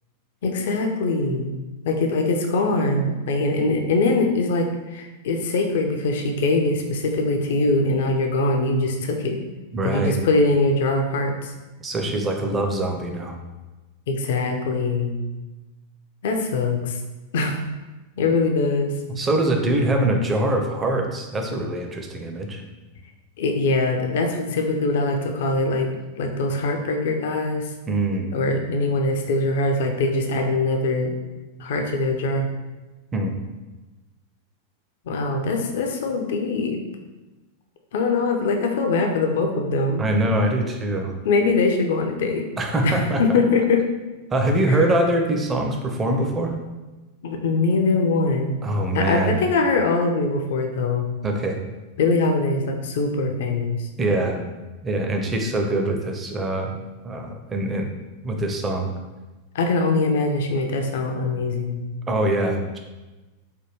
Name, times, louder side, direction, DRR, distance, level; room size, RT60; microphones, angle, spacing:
voice 1, 0.4-1.5 1.8-9.4 9.8-11.5 14.1-15.2 16.2-17.0 17.3-17.6 18.2-18.9 23.4-27.7 28.3-31.1 31.6-32.5 35.1-36.8 37.9-40.0 41.2-42.5 42.8-43.8 44.7-44.8 47.2-48.6 48.9-51.1 52.0-53.9 59.5-61.8, left 3 dB, 55° left, 3 dB, 0.4 m, -22 dB
voice 2, 9.7-10.2 11.8-13.3 19.2-22.6 27.9-28.3 33.1-33.3 40.0-41.1 42.6-43.2 44.3-46.5 48.6-49.4 51.2-51.6 54.0-54.4 54.8-56.7 57.0-57.9 58.2-58.9 62.1-62.8, right 1 dB, 20° right, 3 dB, 0.4 m, -23 dB
3.3 x 2.2 x 3.0 m, 1.2 s
figure-of-eight pair, 90°, 0 cm